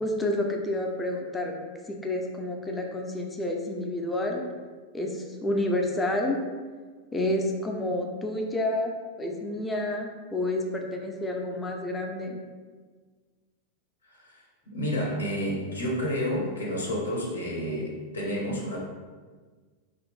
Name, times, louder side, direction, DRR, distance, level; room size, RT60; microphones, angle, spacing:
voice 1, 0.0-1.5 1.9-4.5 4.9-6.4 7.1-12.4, left 1 dB, 10° left, 1 dB, 0.4 m, -29 dB
voice 2, 14.1-18.8, equal, 75° left, -2 dB, 0.7 m, -30 dB
3.1 x 2.4 x 3.1 m, 1.5 s
figure-of-eight pair, 90°, 0 cm